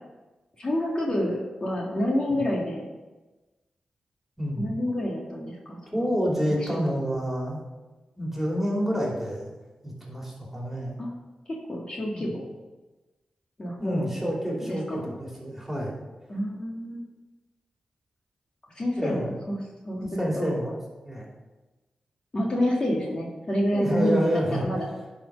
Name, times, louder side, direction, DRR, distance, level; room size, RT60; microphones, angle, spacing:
voice 1, 0.6-2.9 4.6-6.1 6.6-7.0 11.0-11.1 11.5-12.4 13.6-14.1 14.7-15.1 16.3-17.0 18.8-19.6 19.9-20.5 22.3-24.9, equal, 40° left, -2 dB, 2.0 m, -28 dB
voice 2, 4.4-4.8 5.9-7.6 8.2-9.5 9.8-11.0 12.1-12.3 13.8-16.0 19.0-19.3 20.0-20.8 21.0-21.3 23.7-24.7, equal, 10° right, -3 dB, 3.0 m, -28 dB
10.5 x 4.4 x 5.3 m, 1.2 s
cardioid pair, 60°, 2 cm